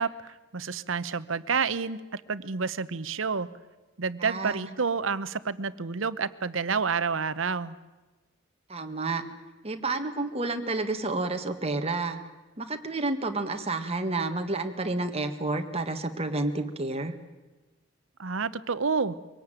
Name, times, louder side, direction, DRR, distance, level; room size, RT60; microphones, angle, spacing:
voice 1, 0.0-3.5 4.0-7.8 18.2-19.1, right 5 dB, 80° right, 15 dB, 0.9 m, -29 dB
voice 2, 4.2-4.7 8.7-9.2 9.6-12.2 12.6-17.1, right 2 dB, 30° right, 6 dB, 1.7 m, -30 dB
23.5 x 18.0 x 9.1 m, 1.2 s
head